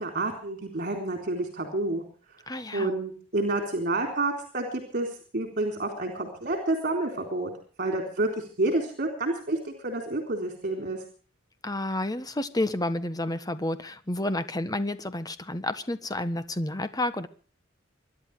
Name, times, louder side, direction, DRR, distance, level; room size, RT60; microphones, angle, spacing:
voice 1, 0.0-2.0 2.7-7.5 7.8-11.0, right 2 dB, 50° right, 4 dB, 3.7 m, -29 dB
voice 2, 2.5-2.9 11.6-17.3, left 1 dB, 20° left, 11 dB, 1.4 m, -30 dB
24.5 x 11.5 x 4.9 m, 0.42 s
head